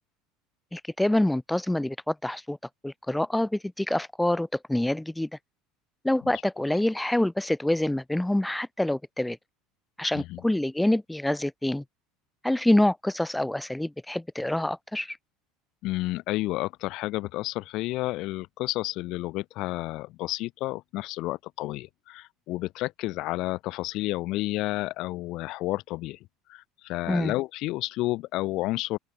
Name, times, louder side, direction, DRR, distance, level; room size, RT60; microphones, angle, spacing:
voice 1, 0.7-2.6 2.8-5.3 6.0-9.4 10.0-11.8 12.4-15.2 27.1-27.3, left 1 dB, 5° left, 3.5 m, -26 dB
voice 2, 15.8-26.2 26.5-29.0, left 18 dB, 60° left, 4.4 m, -31 dB
open air
hypercardioid pair, 70°, 0 cm